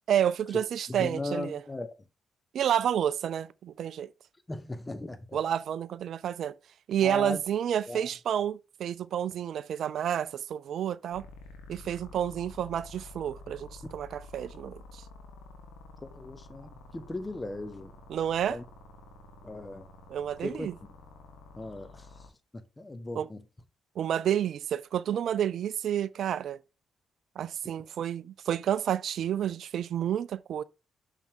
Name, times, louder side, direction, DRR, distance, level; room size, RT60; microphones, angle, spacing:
voice 1, 0.1-1.6 2.5-4.1 5.3-6.5 6.9-11.2 11.7-15.0 18.1-18.6 20.1-20.7 23.2-23.3 24.0-26.6 27.4-30.6, right 9 dB, 70° right, 0.3 m, -30 dB
voice 2, 0.9-2.0 4.5-5.4 7.0-7.4 7.9-8.1 16.0-17.9 18.5-18.6 19.4-19.9 20.4-20.7 21.6-22.1 22.8-23.4, left 2 dB, 20° left, 1.2 m, -37 dB
sound 1, 11.1-22.3, left 2 dB, 80° left, 1.5 m, -49 dB
6.4 x 5.7 x 3.6 m
hypercardioid pair, 45°, 0 cm